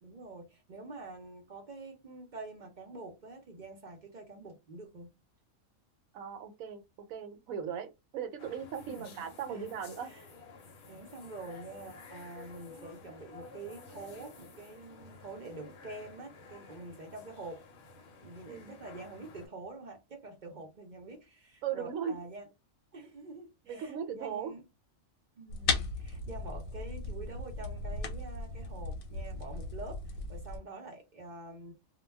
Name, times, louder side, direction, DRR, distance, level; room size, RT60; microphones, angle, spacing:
voice 1, 0.0-5.1 8.9-9.8 10.0-10.2 10.9-17.6 18.2-22.5 22.9-24.6 25.4-31.7, right 2 dB, 50° right, 0.6 m, -46 dB
voice 2, 6.1-10.1 18.5-18.7 21.6-22.2 23.6-24.5, right 7 dB, 80° right, 1.0 m, -38 dB
sound 1, 8.4-19.5, left 4 dB, 60° left, 0.8 m, -52 dB
sound 2, 25.5-30.6, left 3 dB, 85° left, 1.1 m, -36 dB
2.2 x 2.2 x 3.2 m
omnidirectional pair, 1.4 m